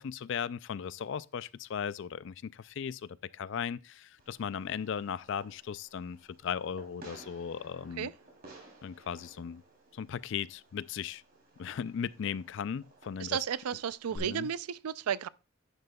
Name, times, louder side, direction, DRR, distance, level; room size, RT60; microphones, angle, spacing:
voice 1, 0.0-8.1 8.8-9.6 9.9-11.2 11.6-13.4 14.1-14.5, left 7 dB, 55° left, 0.3 m, -37 dB
Fireworks, 4.2-14.2, right 2 dB, 45° right, 3.0 m, -56 dB
voice 2, 13.2-15.3, right 8 dB, 85° right, 0.4 m, -33 dB
10.5 x 9.9 x 2.3 m
head